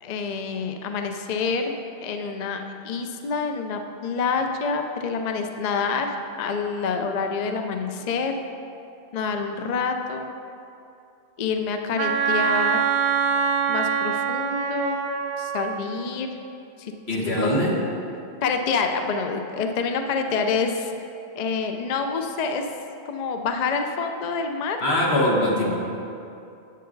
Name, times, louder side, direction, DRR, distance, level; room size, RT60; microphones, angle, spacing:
voice 1, 0.0-1.7 2.0-6.1 6.4-8.3 9.1-10.3 11.4-12.8 13.7-15.0 15.4-16.3 16.8-16.9 17.4-17.6 18.4-20.9 21.3-22.6 23.1-24.8, left 5 dB, 50° left, 5 dB, 0.6 m, -27 dB
Wind instrument woodwind instrument, 12.0-15.8, right 6 dB, 65° right, 0.7 m, -24 dB
voice 2, 17.1-17.8 24.8-25.7, left 1 dB, 85° left, -3 dB, 1.7 m, -22 dB
9.4 x 7.7 x 3.9 m, 2.7 s
omnidirectional pair, 1.0 m